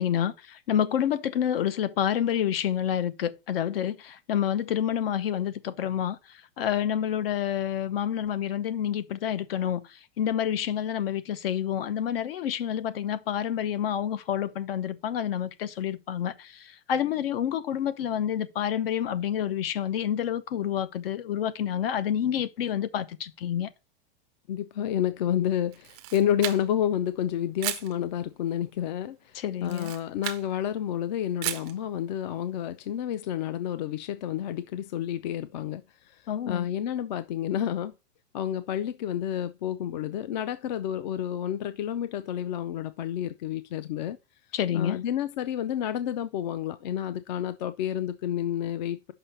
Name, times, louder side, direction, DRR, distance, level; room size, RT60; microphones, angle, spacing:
voice 1, 0.0-23.7 29.3-29.9 36.3-36.7 44.5-45.0, left 9 dB, 70° left, 0.9 m, -28 dB
voice 2, 24.5-29.2 29.6-35.8 36.5-37.9 38.3-44.2 44.7-49.1, left 10 dB, 45° left, 0.5 m, -30 dB
Camera, 25.7-26.9 27.6-27.9 29.6-30.5 31.4-31.8, right 15 dB, 20° right, 0.4 m, -34 dB
6.4 x 5.6 x 5.4 m
supercardioid pair, 175°, 30 cm